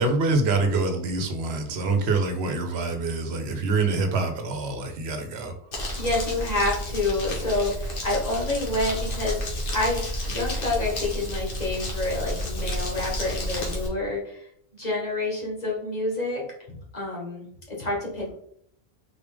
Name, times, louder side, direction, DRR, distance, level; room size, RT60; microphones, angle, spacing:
voice 1, 0.0-5.5, right 3 dB, 90° right, 6 dB, 1.0 m, -25 dB
Crumpling crinkling, 5.7-13.9, equal, 60° left, 1.3 m, -31 dB
voice 2, 6.0-9.4 9.7-14.4 14.7-16.4 16.7-18.3, left 2 dB, 40° left, -4 dB, 1.6 m, -28 dB
4.1 x 3.4 x 3.3 m, 0.67 s
omnidirectional pair, 1.1 m